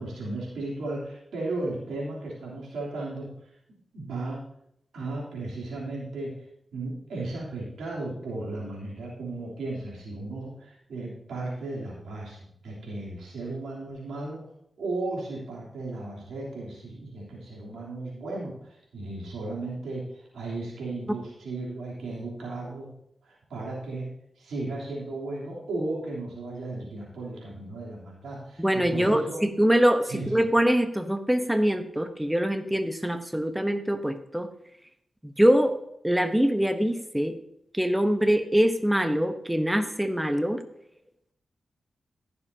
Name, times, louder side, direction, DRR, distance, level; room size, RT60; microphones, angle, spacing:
voice 1, 0.0-3.5 3.9-4.4 4.9-6.3 6.7-14.4 14.8-22.9 23.2-24.1 24.4-29.4 30.0-30.4, right 2 dB, 90° right, -4 dB, 3.3 m, -35 dB
voice 2, 28.6-34.5 35.2-35.8 36.0-37.3 37.7-40.6, equal, 10° right, 8 dB, 1.0 m, -24 dB
15.5 x 6.9 x 2.8 m, 0.74 s
cardioid pair, 45°, 0 cm